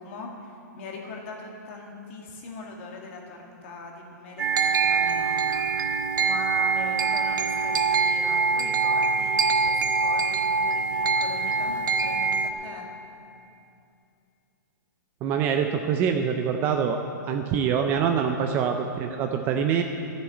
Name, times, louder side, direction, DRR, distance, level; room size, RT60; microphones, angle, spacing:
voice 1, 0.0-12.8, left 2 dB, 40° left, 0 dB, 1.9 m, -41 dB
sound 1, 4.4-12.5, right 4 dB, 80° right, 1.0 m, -24 dB
voice 2, 15.2-17.0 17.3-19.8, right 7 dB, 20° right, 5 dB, 0.4 m, -25 dB
12.5 x 7.2 x 8.2 m, 2.6 s
hypercardioid pair, 165°, 10 cm